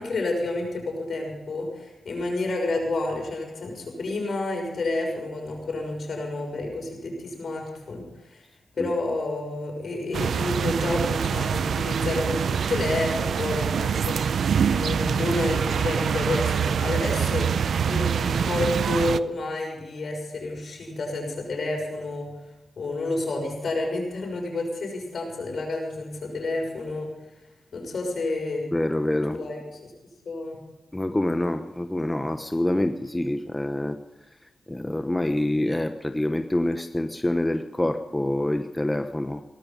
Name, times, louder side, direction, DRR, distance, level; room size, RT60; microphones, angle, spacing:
voice 1, 0.0-8.4 8.8-14.4 14.7-17.5 17.9-22.3 22.8-27.1 27.7-28.6 29.3-29.9 30.2-30.6, left 2 dB, 65° left, 1 dB, 6.2 m, -29 dB
sound 1, 10.1-19.2, right 7 dB, 75° right, 0.5 m, -25 dB
voice 2, 28.7-29.4 30.9-34.0 34.7-39.4, left 1 dB, 15° left, 7 dB, 0.9 m, -26 dB
18.0 x 14.0 x 5.3 m, 1.0 s
cardioid pair, 70°, 0 cm